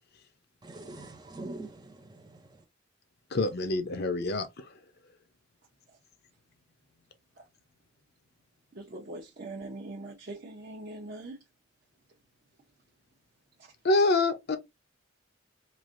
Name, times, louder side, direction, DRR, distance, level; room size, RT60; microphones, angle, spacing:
voice 1, 0.6-2.6, right 2 dB, 20° right, 0.4 m, -44 dB
voice 2, 3.3-4.7 13.8-14.6, left 2 dB, 55° left, 0.6 m, -26 dB
voice 3, 8.8-11.4, right 2 dB, 50° right, 0.7 m, -41 dB
3.2 x 2.6 x 2.5 m
head